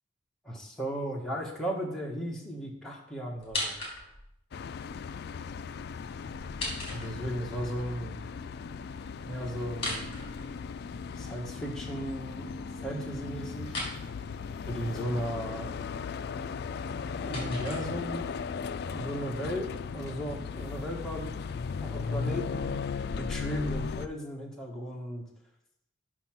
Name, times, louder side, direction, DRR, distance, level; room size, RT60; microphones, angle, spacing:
voice 1, 0.4-3.8 6.9-8.2 9.2-10.1 11.2-12.5 12.8-13.8 14.6-15.7 17.3-18.3 18.9-21.4 21.8-22.8 23.1-25.2, equal, ahead, -3 dB, 1.5 m, -36 dB
sound 1, 3.4-4.4 6.3-7.6 9.7-11.0 13.6-14.0 16.7-18.3, left 2 dB, 30° left, 2.8 m, -38 dB
sound 2, 4.5-24.1, left 5 dB, 55° left, 0.3 m, -37 dB
6.1 x 5.7 x 6.0 m, 0.78 s
head